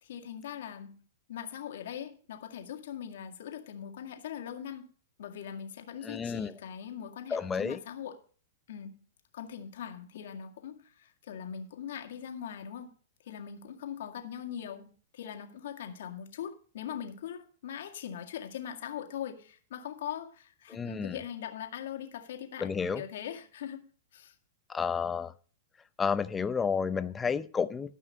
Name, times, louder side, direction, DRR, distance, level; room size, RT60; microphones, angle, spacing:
voice 1, 0.0-1.0 1.3-4.9 5.2-8.2 8.7-9.0 9.3-12.9 13.2-24.3, left 9 dB, 70° left, 1.9 m, -41 dB
voice 2, 6.0-6.5 7.3-7.8 20.7-21.2 22.6-23.0 24.7-25.3 26.0-27.9, left 6 dB, 15° left, 0.7 m, -31 dB
13.5 x 5.7 x 5.6 m
hypercardioid pair, 120°, 0 cm